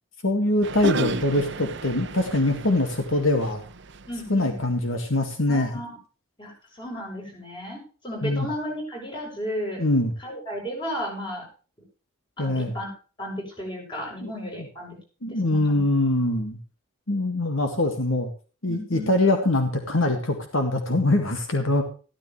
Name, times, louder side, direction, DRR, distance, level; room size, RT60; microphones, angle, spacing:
voice 1, 0.2-3.6 4.3-5.8 8.2-8.5 9.8-10.1 12.4-12.7 14.2-14.3 15.2-16.6 17.1-18.3 18.6-21.8, left 2 dB, 70° left, 5 dB, 2.0 m, -23 dB
sound 1, 0.6-4.4, right 3 dB, 55° right, 0.8 m, -34 dB
voice 2, 4.1-4.6 5.5-6.0 6.4-9.8 10.2-11.5 12.4-12.9 13.2-15.0 15.3-15.8 18.7-19.1, equal, 20° left, 0 dB, 7.2 m, -34 dB
15.0 x 13.5 x 3.2 m, 0.36 s
head